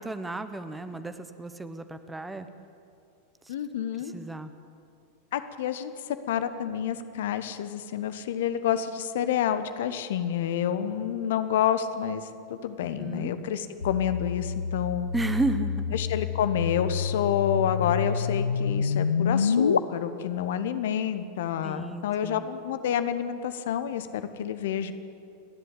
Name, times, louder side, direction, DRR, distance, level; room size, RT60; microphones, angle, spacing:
voice 1, 0.0-2.5 3.5-3.6 4.1-4.5 12.8-13.3 15.1-16.0 21.6-22.4, right 2 dB, 10° right, 11 dB, 1.0 m, -33 dB
voice 2, 3.5-4.1 5.3-15.1 15.9-24.9, left 9 dB, 55° left, 11 dB, 1.1 m, -29 dB
sound 1, 13.8-19.8, left 6 dB, 70° left, 0.5 m, -28 dB
29.5 x 11.0 x 8.5 m, 2.5 s
figure-of-eight pair, 90°, 0 cm